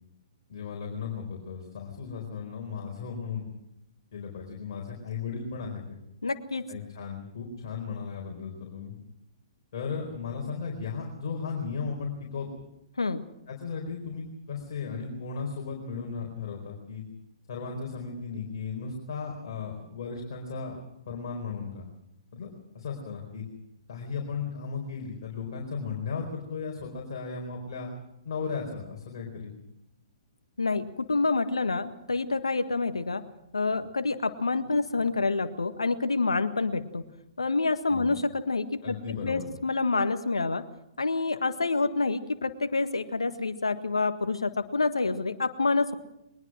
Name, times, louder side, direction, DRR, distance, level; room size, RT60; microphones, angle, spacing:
voice 1, 0.5-3.5 4.1-6.0 6.7-8.9 9.7-12.5 13.5-17.0 17.5-20.8 21.0-21.9 22.3-23.4 23.9-27.9 28.2-29.5 37.9-38.1 38.8-39.5, left 5 dB, 50° left, 0 dB, 4.5 m, -36 dB
voice 2, 6.2-6.7 13.0-13.2 30.6-33.2 33.5-37.0 37.4-39.0 39.2-40.6 41.0-45.9, left 3 dB, 75° left, 10 dB, 1.6 m, -27 dB
22.0 x 20.5 x 6.3 m, 0.83 s
figure-of-eight pair, 120°, 3 cm